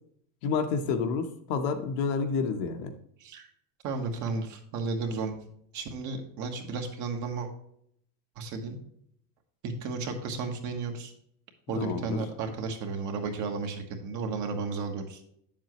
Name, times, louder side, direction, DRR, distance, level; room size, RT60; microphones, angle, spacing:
voice 1, 0.4-2.9 11.8-12.2, left 5 dB, 55° left, 6 dB, 1.1 m, -29 dB
voice 2, 3.8-5.3 5.7-7.5 8.4-8.8 9.6-11.1 11.7-15.2, right 4 dB, 35° right, 4 dB, 1.3 m, -33 dB
8.8 x 7.4 x 3.0 m, 0.70 s
supercardioid pair, 160°, 49 cm